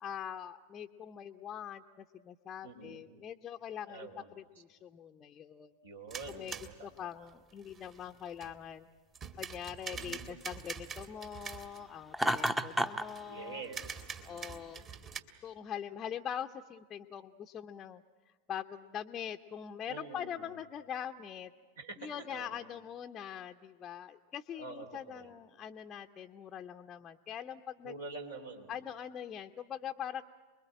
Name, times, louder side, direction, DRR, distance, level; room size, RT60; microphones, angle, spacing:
voice 1, 0.0-4.1 4.4-5.7 6.3-6.5 6.8-8.9 9.4-13.6 14.2-14.8 15.4-18.0 18.5-21.5 22.0-27.9 28.7-30.2, left 9 dB, 25° left, 3 dB, 0.7 m, -43 dB
voice 2, 2.6-3.0 3.9-4.3 5.8-7.1 9.9-10.2 13.3-14.5 19.9-20.6 21.8-22.6 24.6-25.3 27.8-28.8, right 3 dB, 70° right, 3 dB, 3.7 m, -47 dB
sound 1, 6.1-8.7 9.1-11.9 12.3-12.6 12.9-13.2 13.6-15.2, right 6 dB, 30° right, 2.0 m, -45 dB
Laughter, 12.1-13.1, right 1 dB, 5° right, 0.9 m, -30 dB
29.5 x 21.5 x 8.9 m, 1.5 s
figure-of-eight pair, 90°, 0 cm